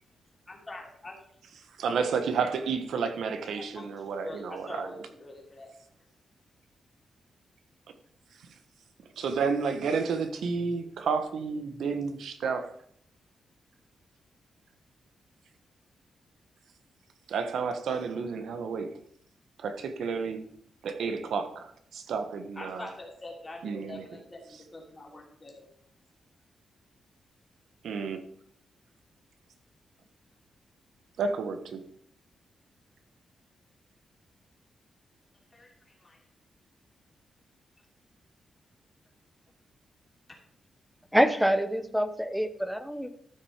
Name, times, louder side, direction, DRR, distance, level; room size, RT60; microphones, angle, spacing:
voice 1, 0.5-1.2 3.5-5.7 22.5-25.7 35.5-36.2, left 2 dB, 20° left, -1 dB, 3.1 m, -45 dB
voice 2, 1.8-4.9 9.2-12.7 17.3-18.9 19.6-20.4 20.8-22.9 23.6-24.1 27.8-28.2 31.2-31.8, right 5 dB, 80° right, 8 dB, 1.3 m, -31 dB
voice 3, 41.1-43.1, equal, ahead, 11 dB, 0.8 m, -26 dB
13.5 x 6.2 x 5.0 m, 0.66 s
wide cardioid pair, 155°, 0 cm